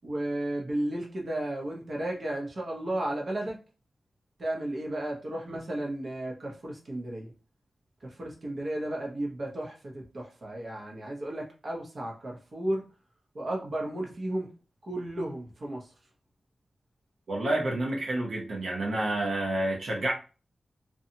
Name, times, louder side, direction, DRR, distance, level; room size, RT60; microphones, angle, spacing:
voice 1, 0.0-3.6 4.4-7.3 8.0-12.8 13.3-14.5 14.8-15.9, right 1 dB, 50° right, -1 dB, 0.7 m, -34 dB
voice 2, 17.3-20.1, right 1 dB, 85° right, -2 dB, 0.8 m, -29 dB
2.7 x 2.3 x 2.7 m, 0.34 s
wide cardioid pair, 135°, 0 cm